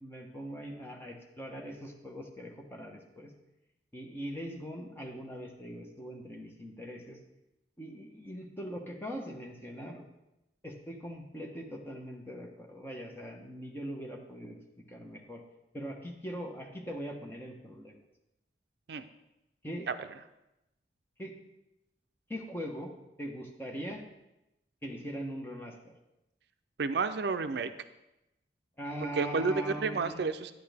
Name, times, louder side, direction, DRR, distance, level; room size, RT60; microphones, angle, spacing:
voice 1, 0.0-3.3 3.9-7.2 7.8-10.0 10.6-14.6 14.9-15.4 15.7-18.0 19.6-19.9 21.2-21.3 22.3-22.9 23.2-24.0 24.8-25.9 28.8-30.3, equal, 15° left, 1 dB, 1.0 m, -41 dB
voice 2, 26.8-27.7 29.2-30.5, right 4 dB, 70° right, 10 dB, 0.5 m, -30 dB
10.0 x 8.6 x 3.4 m, 0.91 s
head